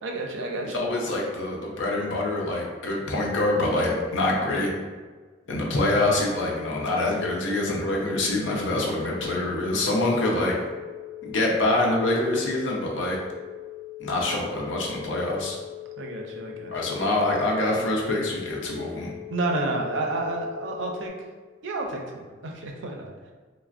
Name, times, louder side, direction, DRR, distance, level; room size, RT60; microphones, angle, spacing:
voice 1, 0.0-0.9 16.0-16.7 19.3-21.1 21.6-23.1, right 2 dB, 75° right, 1 dB, 0.4 m, -30 dB
voice 2, 0.7-4.7 5.5-10.5 11.2-13.2 14.0-15.6 16.7-19.1, left 2 dB, 80° left, -2 dB, 0.6 m, -25 dB
sound 1, 6.3-21.1, left 17 dB, 40° right, 1.0 m, -41 dB
3.3 x 2.0 x 2.4 m, 1.4 s
head